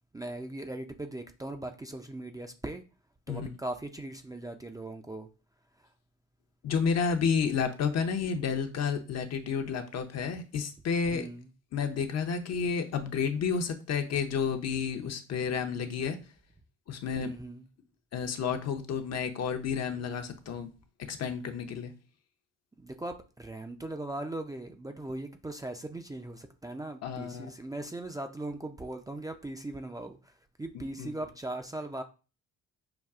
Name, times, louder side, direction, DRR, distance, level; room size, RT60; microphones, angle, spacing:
voice 1, 0.1-2.8 3.3-5.3 5.8-5.9 11.1-11.5 17.2-17.6 22.8-30.3 30.6-32.0, right 2 dB, 10° right, 0.5 m, -39 dB
voice 2, 6.6-11.3 11.7-16.2 16.9-17.3 18.1-20.7 21.1-21.9 27.0-27.5 30.7-31.1, left 6 dB, 50° left, 0.7 m, -31 dB
5.8 x 2.3 x 2.4 m
hypercardioid pair, 60°, 33 cm